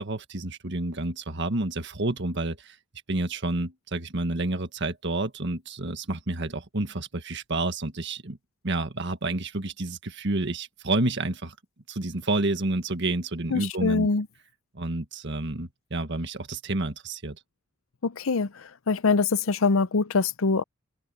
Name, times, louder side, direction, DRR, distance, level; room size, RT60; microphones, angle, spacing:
voice 1, 0.0-2.7 3.1-8.4 8.6-11.5 11.9-14.1 14.7-17.4, right 2 dB, 60° right, 1.7 m, -29 dB
voice 2, 13.5-14.3 18.0-18.5 18.9-20.6, left 4 dB, 90° left, 0.7 m, -23 dB
head